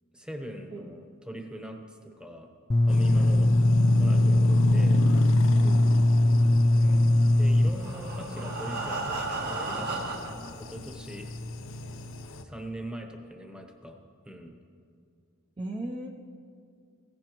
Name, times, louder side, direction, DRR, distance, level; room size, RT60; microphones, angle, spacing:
voice 1, 0.1-2.5 2.8-3.5 4.0-5.0 7.4-10.3 10.7-11.3 12.4-14.0 14.2-14.5, right 1 dB, 5° right, 3 dB, 1.0 m, -41 dB
sound 1, 2.7-7.7, left 1 dB, 20° left, 0.3 m, -21 dB
sound 2, 2.9-12.4, left 3 dB, 65° left, 0.7 m, -33 dB
voice 2, 3.2-3.5 5.6-5.9 15.6-16.1, right 1 dB, 25° right, 0 dB, 0.6 m, -37 dB
Breathing, 7.6-10.5 11.3-11.4 11.7-11.8 12.3-12.4, right 3 dB, 50° right, 1.3 m, -34 dB
16.0 x 15.0 x 3.1 m, 2.2 s
head